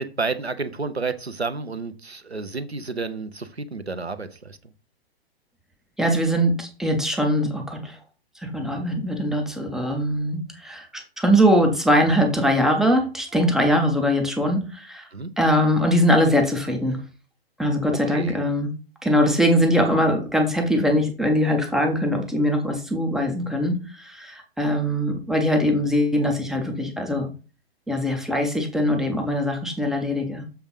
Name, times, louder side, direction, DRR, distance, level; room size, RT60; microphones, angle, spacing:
voice 1, 0.0-4.6 15.1-15.3 18.1-18.4, right 4 dB, 90° right, 11 dB, 0.8 m, -30 dB
voice 2, 6.0-8.0 8.4-15.1 15.4-17.0 17.6-18.7 19.0-27.3 27.9-30.4, equal, ahead, 3 dB, 0.3 m, -22 dB
7.1 x 3.6 x 5.3 m, 0.35 s
figure-of-eight pair, 110°, 31 cm